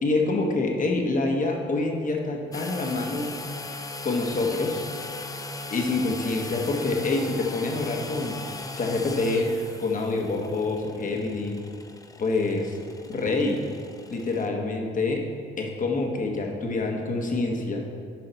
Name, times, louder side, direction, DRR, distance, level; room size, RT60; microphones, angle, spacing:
voice 1, 0.0-3.3 4.0-4.8 5.7-8.4 8.8-9.5 9.8-11.6 12.2-12.8 13.1-13.6 14.1-15.2 15.6-17.8, left 3 dB, 40° left, 2 dB, 1.3 m, -26 dB
sound 1, 2.5-14.5, left 3 dB, 15° left, 0.5 m, -38 dB
10.5 x 5.1 x 4.0 m, 2.2 s
cardioid pair, 90°, 20 cm